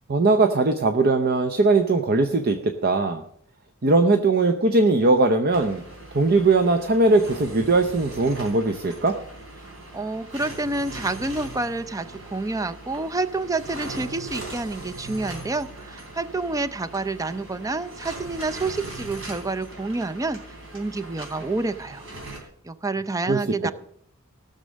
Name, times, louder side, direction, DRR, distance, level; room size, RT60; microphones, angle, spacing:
voice 1, 0.1-3.2 3.8-5.8 6.1-9.2 23.3-23.4, right 3 dB, 50° right, 7 dB, 0.7 m, -20 dB
sound 1, 5.5-22.4, right 2 dB, 65° right, 3.4 m, -40 dB
voice 2, 9.9-22.0 22.6-23.7, right 3 dB, 15° right, 12 dB, 0.5 m, -28 dB
16.0 x 6.7 x 6.3 m, 0.68 s
head